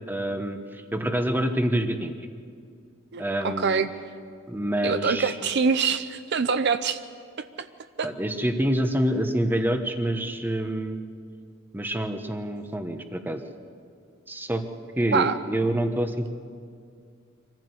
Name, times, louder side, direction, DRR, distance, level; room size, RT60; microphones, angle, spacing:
voice 1, 0.1-2.2 3.2-3.9 4.5-5.5 8.0-11.0 11.7-13.4 14.3-14.6 15.0-16.3, right 1 dB, 10° right, 6 dB, 1.2 m, -27 dB
voice 2, 3.1-3.9 4.8-7.0 7.6-7.7 8.0-8.1 15.1-15.4, right 5 dB, 60° right, 11 dB, 0.6 m, -24 dB
24.0 x 15.5 x 8.0 m, 2.2 s
head